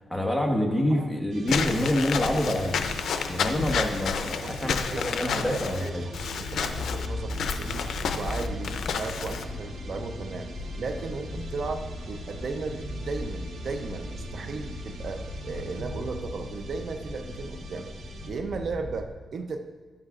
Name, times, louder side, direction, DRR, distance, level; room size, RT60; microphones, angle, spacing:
voice 1, 0.0-2.8 3.3-6.0, left 1 dB, ahead, 1 dB, 1.3 m, -27 dB
sound 1, 1.3-18.3, right 1 dB, 85° right, 1.1 m, -42 dB
Walk footsteps / Squeak, 1.5-9.4, left 6 dB, 85° left, 0.5 m, -30 dB
voice 2, 4.4-5.1 5.3-10.5 10.8-17.9 18.3-19.6, right 4 dB, 65° right, 6 dB, 0.6 m, -36 dB
Motor vehicle (road), 6.7-19.1, left 2 dB, 40° left, 1.4 m, -38 dB
13.0 x 9.7 x 2.5 m, 1.4 s
cardioid pair, 85°, 0 cm